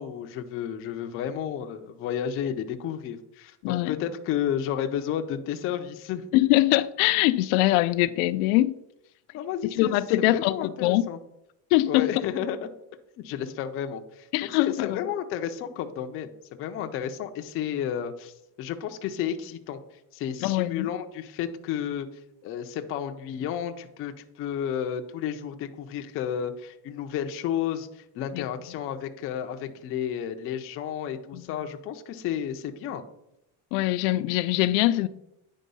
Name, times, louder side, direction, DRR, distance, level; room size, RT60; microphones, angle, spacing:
voice 1, 0.0-6.2 9.3-11.2 11.9-12.7 13.2-16.3 16.6-19.8 20.1-22.1 22.4-33.0, left 9 dB, 30° left, 0.4 m, -32 dB
voice 2, 3.6-3.9 6.3-8.8 9.8-11.0 11.7-12.1 14.3-15.0 20.4-20.9 28.3-28.5 31.3-31.5 33.7-35.1, left 16 dB, 85° left, 0.5 m, -23 dB
9.4 x 3.6 x 5.3 m
cardioid pair, 165°, 45 cm